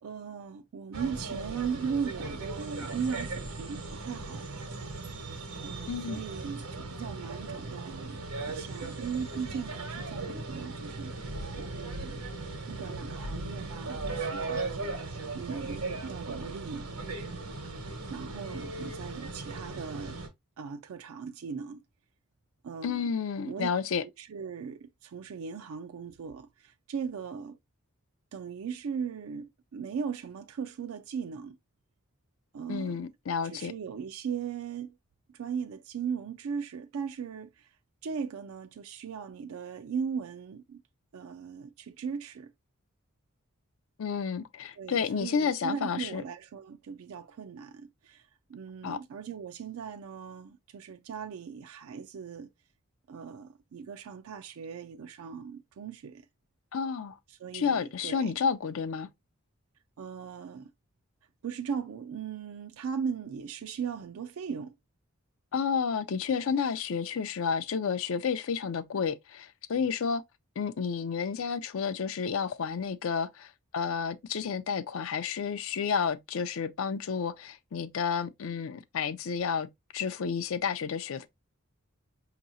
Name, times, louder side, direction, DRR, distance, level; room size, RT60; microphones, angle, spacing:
voice 1, 0.0-4.5 5.6-8.2 8.5-11.1 11.6-12.2 12.7-16.9 18.1-20.2 20.6-21.8 22.6-23.1 23.4-23.7 24.0-27.6 28.3-31.6 32.5-33.0 33.4-35.0 35.3-37.8 38.0-40.8 41.1-42.5 44.8-52.5 53.1-56.3 57.3-58.4 60.0-60.7 61.4-64.8, right 6 dB, 70° right, 0.4 m, -38 dB
sound 1, 0.9-20.3, right 3 dB, 85° right, 1.3 m, -38 dB
voice 2, 5.9-6.2 22.8-24.0 32.7-33.7 44.0-46.2 48.8-49.0 56.7-57.2 57.5-59.1 65.5-70.2 70.6-79.7 79.9-81.3, left 6 dB, 65° left, 0.4 m, -31 dB
5.4 x 2.9 x 2.5 m
head